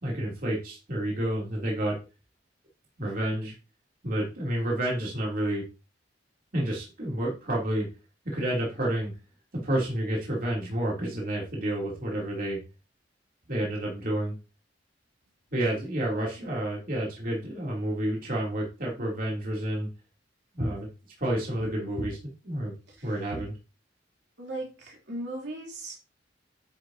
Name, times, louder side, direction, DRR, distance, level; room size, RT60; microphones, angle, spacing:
voice 1, 0.0-2.0 3.0-3.5 4.0-5.6 6.5-7.9 8.2-9.1 9.6-12.6 13.5-14.3 15.5-19.9 20.5-20.9 21.2-22.7 23.0-23.5, right 1 dB, 50° right, -3 dB, 3.1 m, -29 dB
voice 2, 21.6-22.0 22.9-23.3 24.4-26.0, right 1 dB, 65° right, -2 dB, 3.3 m, -39 dB
10.5 x 6.7 x 2.8 m, 0.29 s
head